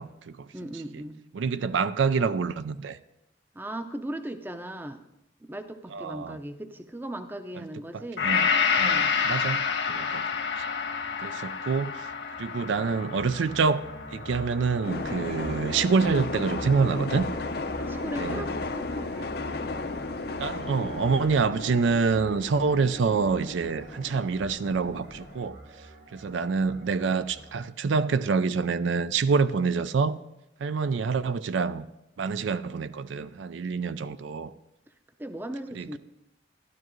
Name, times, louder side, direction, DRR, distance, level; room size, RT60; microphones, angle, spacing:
voice 1, 0.0-0.5 0.9-1.0 1.3-3.0 5.9-6.4 7.6-7.7 7.9-8.5 8.8-10.3 10.6-10.7 11.2-12.1 12.4-13.8 14.1-17.2 18.2-18.4 20.4-25.6 26.1-30.2 30.6-31.9 32.2-34.5 35.8-36.0, right 5 dB, 85° right, 13 dB, 0.4 m, -27 dB
voice 2, 0.5-1.2 3.5-5.0 5.4-8.3 8.8-9.4 17.8-18.9 35.2-36.0, right 1 dB, 10° right, 8 dB, 0.5 m, -38 dB
Gong, 8.2-16.5 16.9-17.0, left 6 dB, 75° left, 1.4 m, -29 dB
sound 1, 12.1-27.7, right 1 dB, 45° right, 1.3 m, -44 dB
sound 2, 14.8-25.5, left 3 dB, 55° left, 0.6 m, -35 dB
12.5 x 12.0 x 3.1 m, 0.89 s
head